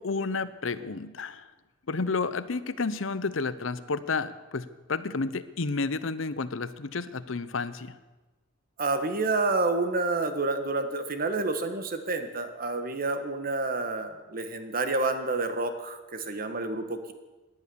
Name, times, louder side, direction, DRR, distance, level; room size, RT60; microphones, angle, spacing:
voice 1, 0.0-1.4 1.9-7.9, left 4 dB, 70° left, 15 dB, 0.8 m, -31 dB
voice 2, 8.8-17.1, right 3 dB, 45° right, 8 dB, 1.5 m, -29 dB
18.0 x 11.0 x 7.0 m, 1.2 s
head